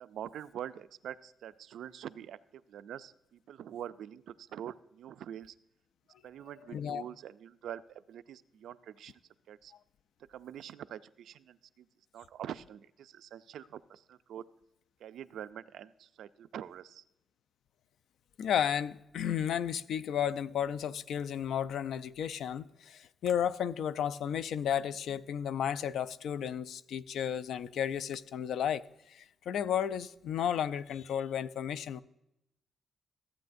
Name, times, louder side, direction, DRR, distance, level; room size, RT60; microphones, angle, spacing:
voice 1, 0.0-5.5 6.2-9.1 9.5-9.7 10.3-11.9 12.1-14.5 15.0-17.0, right 10 dB, 85° right, 0.3 m, -45 dB
voice 2, 6.7-7.0 18.4-32.0, left 9 dB, 80° left, 0.3 m, -33 dB
14.5 x 8.5 x 2.6 m
cardioid pair, 140°, 0 cm